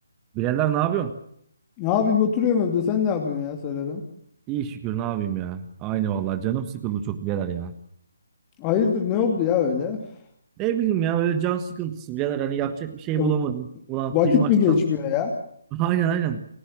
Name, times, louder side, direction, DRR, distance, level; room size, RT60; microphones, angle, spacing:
voice 1, 0.3-1.1 4.5-7.7 10.6-14.8 15.7-16.4, right 10 dB, 15° right, 10 dB, 1.4 m, -26 dB
voice 2, 1.8-4.0 8.6-10.0 13.2-13.3 14.1-15.3, left 7 dB, 20° left, 3 dB, 2.6 m, -22 dB
29.5 x 16.5 x 7.5 m, 0.71 s
figure-of-eight pair, 145°, 0 cm